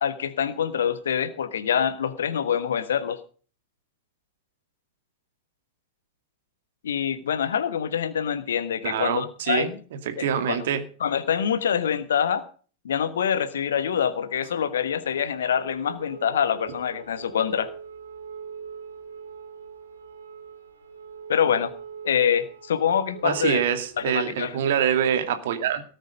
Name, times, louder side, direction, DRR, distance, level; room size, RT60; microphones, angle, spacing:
voice 1, 0.0-3.2 6.8-9.8 10.2-10.6 11.0-12.4 12.8-17.7 21.3-21.7 22.0-23.6 24.0-24.5, left 8 dB, 65° left, 12 dB, 1.3 m, -25 dB
voice 2, 8.8-9.7 10.1-10.8 23.2-25.8, right 9 dB, 55° right, 8 dB, 2.4 m, -25 dB
sound 1, 13.8-24.8, right 6 dB, 85° right, 4.0 m, -43 dB
18.0 x 9.3 x 5.2 m, 0.40 s
figure-of-eight pair, 90°, 0 cm